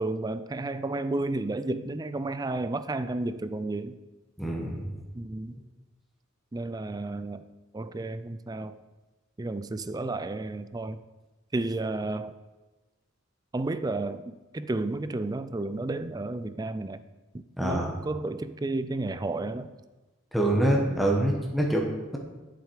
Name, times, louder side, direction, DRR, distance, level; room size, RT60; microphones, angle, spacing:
voice 1, 0.0-4.0 5.2-5.5 6.5-7.4 7.7-8.8 9.4-11.0 11.5-12.3 13.5-17.0 17.3-19.7 20.9-21.1, right 2 dB, 20° right, 12 dB, 0.4 m, -32 dB
voice 2, 4.4-4.9 17.6-17.9 20.3-22.2, right 1 dB, ahead, -1 dB, 1.4 m, -25 dB
11.5 x 7.7 x 4.8 m, 1.2 s
head